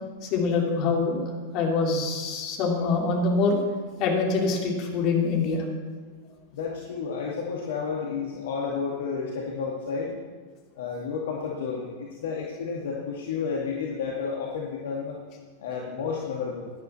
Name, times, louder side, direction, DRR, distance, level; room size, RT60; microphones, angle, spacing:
voice 1, 0.2-3.6 4.0-5.6, left 4 dB, 40° left, -1 dB, 3.5 m, -25 dB
voice 2, 6.5-10.1 10.8-15.1 15.6-16.7, left 5 dB, 60° left, -2 dB, 2.1 m, -31 dB
17.0 x 11.5 x 4.4 m, 1.5 s
figure-of-eight pair, 90°, 0 cm